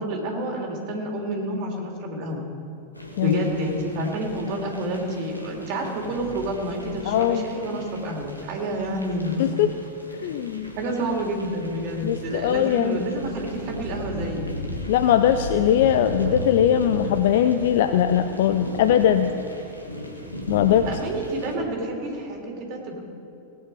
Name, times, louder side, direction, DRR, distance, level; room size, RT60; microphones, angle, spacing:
voice 1, 0.0-2.4 3.2-9.5 10.8-14.5 20.9-23.0, right 1 dB, 40° right, 0 dB, 2.8 m, -29 dB
sound 1, 2.9-21.6, equal, 85° left, 1.6 m, -36 dB
voice 2, 7.1-7.4 9.4-9.7 10.2-10.7 12.0-13.0 14.9-19.3 20.5-20.9, left 10 dB, 55° left, 9 dB, 0.5 m, -20 dB
18.0 x 9.2 x 4.8 m, 2.7 s
figure-of-eight pair, 90°, 0 cm